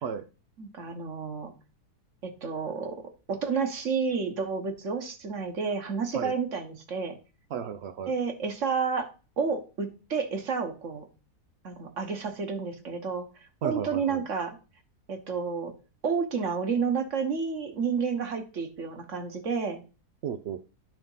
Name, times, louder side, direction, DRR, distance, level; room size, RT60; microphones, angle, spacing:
voice 1, 0.6-1.5 2.2-3.0 3.3-7.2 8.1-9.1 9.4-11.1 11.6-13.2 13.6-14.6 15.1-15.7 16.0-19.8, right 5 dB, 50° right, 1.4 m, -30 dB
voice 2, 7.5-8.1 13.6-14.2 20.2-20.7, right 8 dB, 85° right, 0.5 m, -34 dB
10.0 x 3.5 x 5.5 m
omnidirectional pair, 1.7 m